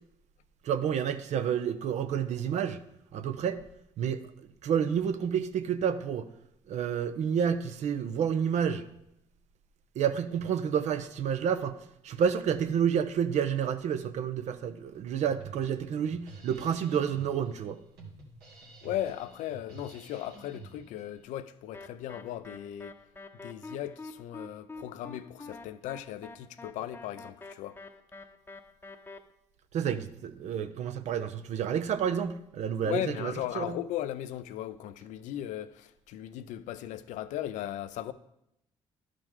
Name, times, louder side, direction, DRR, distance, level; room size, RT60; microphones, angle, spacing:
voice 1, 0.6-2.8 3.1-3.6 4.0-6.2 6.7-8.8 10.0-11.7 12.0-17.8 29.7-33.7, right 8 dB, 65° right, 0.6 m, -29 dB
Drum kit, 15.2-21.2, right 4 dB, 90° right, 1.8 m, -50 dB
voice 2, 18.8-23.0 23.4-27.8 32.8-38.1, left 12 dB, 75° left, 0.5 m, -37 dB
sound 1, 21.7-29.2, left 3 dB, 15° left, 0.8 m, -46 dB
12.0 x 5.0 x 3.6 m
supercardioid pair, 65°, 13 cm